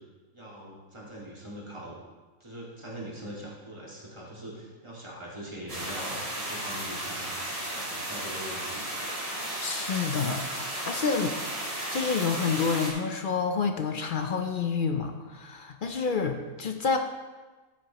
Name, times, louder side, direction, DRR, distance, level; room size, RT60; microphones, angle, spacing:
voice 1, 0.3-2.0 2.4-7.4 7.6-8.8, right 1 dB, 20° right, -5 dB, 2.3 m, -42 dB
sound 1, 5.7-12.9, right 1 dB, 65° right, 3.4 m, -34 dB
voice 2, 9.6-11.3 11.9-17.0, left 5 dB, 55° left, 5 dB, 0.6 m, -28 dB
13.5 x 7.7 x 3.0 m, 1.3 s
omnidirectional pair, 1.4 m